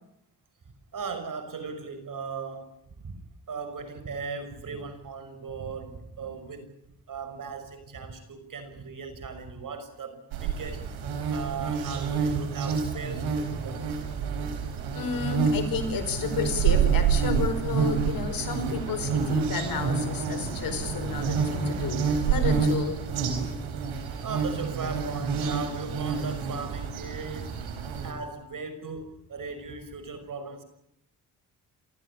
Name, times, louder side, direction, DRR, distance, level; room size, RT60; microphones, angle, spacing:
voice 1, 0.9-2.7 3.0-3.1 3.5-6.7 7.1-11.0 11.3-13.8 23.4-23.6 24.2-27.6 28.0-30.6, right 5 dB, 55° right, 10 dB, 6.1 m, -38 dB
sound 1, 10.3-28.1, right 6 dB, 85° right, 4.7 m, -28 dB
voice 2, 14.9-23.1, left 5 dB, 65° left, 8 dB, 5.2 m, -31 dB
27.5 x 15.0 x 9.8 m, 0.78 s
supercardioid pair, 60°, 37 cm